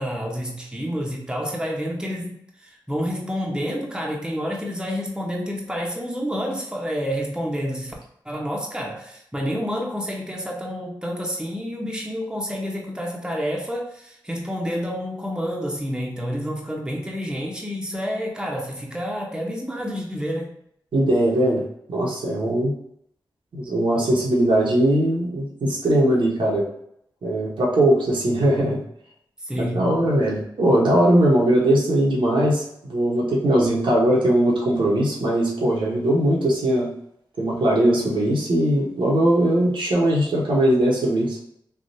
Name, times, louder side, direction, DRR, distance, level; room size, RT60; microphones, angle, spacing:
voice 1, 0.0-7.9 8.2-20.5 29.4-30.0, equal, 10° right, -1 dB, 0.9 m, -29 dB
voice 2, 20.9-21.6 21.9-22.7 23.5-26.7 27.2-28.8 29.6-36.9 37.4-41.4, right 1 dB, 80° right, -4 dB, 1.0 m, -20 dB
3.4 x 2.4 x 2.7 m, 0.71 s
cardioid pair, 45°, 9 cm